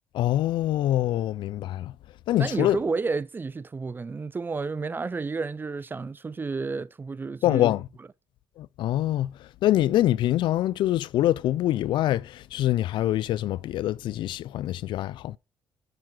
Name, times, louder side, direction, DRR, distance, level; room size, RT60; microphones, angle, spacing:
voice 1, 0.1-1.9 2.3-2.8 7.4-7.9 8.6-9.3 9.6-15.4, left 13 dB, 70° left, 0.4 m, -24 dB
voice 2, 2.4-7.7, right 4 dB, 25° right, 0.5 m, -31 dB
7.7 x 5.8 x 3.8 m
cardioid pair, 80°, 8 cm